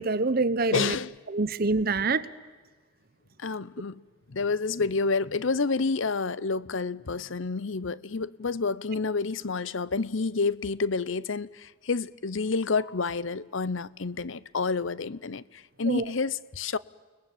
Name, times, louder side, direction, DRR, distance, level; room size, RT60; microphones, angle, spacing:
voice 1, 0.0-1.0 1.3-2.3 15.9-16.0, right 3 dB, 45° right, 0.9 m, -25 dB
voice 2, 0.7-1.1 3.4-4.0 4.3-16.8, left 4 dB, 70° left, 0.8 m, -29 dB
29.5 x 21.0 x 9.1 m
head